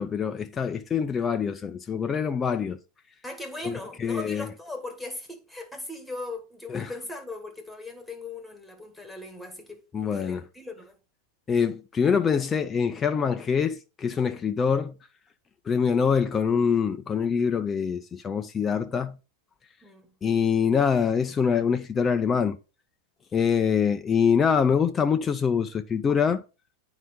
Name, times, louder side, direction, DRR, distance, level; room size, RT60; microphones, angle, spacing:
voice 1, 0.0-2.8 3.6-3.7 4.0-4.5 6.7-6.9 9.9-10.4 11.5-14.9 15.7-19.2 20.2-22.6 23.3-26.4, left 6 dB, 20° left, 0.5 m, -24 dB
voice 2, 3.2-11.0 19.8-20.1, left 2 dB, 5° left, 1.8 m, -39 dB
9.3 x 4.9 x 3.9 m
figure-of-eight pair, 90°, 0 cm